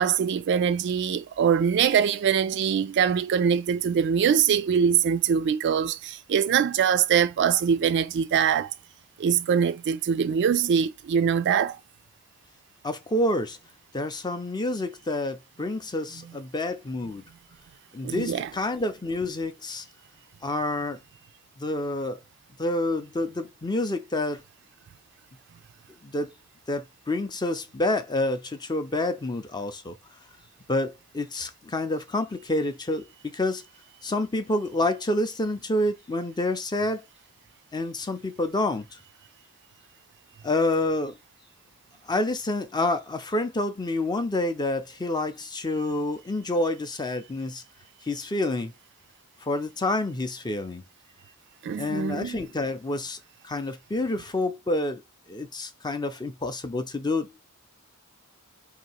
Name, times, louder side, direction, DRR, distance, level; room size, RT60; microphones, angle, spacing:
voice 1, 0.0-8.7 9.2-11.8 16.1-16.3 18.0-18.5 51.6-52.4, right 7 dB, 55° right, 0.3 m, -23 dB
voice 2, 12.8-13.6 13.9-17.2 17.9-19.9 20.4-21.0 21.6-22.2 22.6-24.4 26.0-26.3 26.7-30.0 30.7-33.6 34.0-37.0 37.7-39.0 40.4-41.2 42.1-47.6 48.1-48.7 49.4-50.8 51.8-53.2 53.4-55.0 55.3-57.5, left 2 dB, 20° left, 0.5 m, -28 dB
2.8 x 2.7 x 4.3 m
head